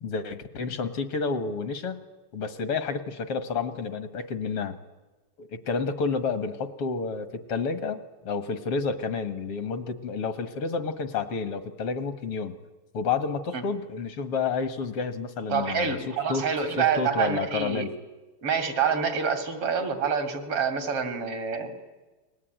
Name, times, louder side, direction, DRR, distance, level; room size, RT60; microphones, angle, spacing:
voice 1, 0.0-2.0 2.3-4.8 5.4-12.6 12.9-16.5 16.8-17.9, left 5 dB, 85° left, 11 dB, 2.6 m, -30 dB
voice 2, 15.5-17.8 18.4-21.7, right 6 dB, 85° right, 8 dB, 3.6 m, -27 dB
29.5 x 21.5 x 9.4 m, 1.2 s
omnidirectional pair, 2.4 m